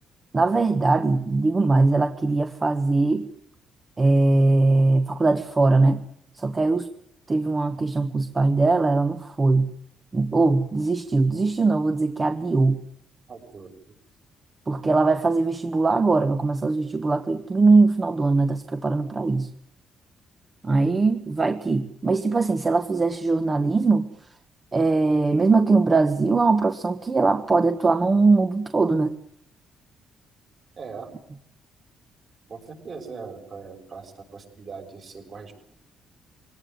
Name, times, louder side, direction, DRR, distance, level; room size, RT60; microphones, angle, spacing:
voice 1, 0.3-3.3 4.0-6.0 6.3-6.9 7.3-9.8 10.1-12.8 14.7-19.5 20.6-24.1 24.7-29.2, right 3 dB, 30° right, 8 dB, 1.3 m, -21 dB
voice 2, 13.3-14.0 30.8-31.1 32.5-35.5, right 5 dB, 50° right, 4 dB, 6.4 m, -40 dB
23.0 x 18.0 x 9.4 m, 0.71 s
cardioid pair, 90°, 0 cm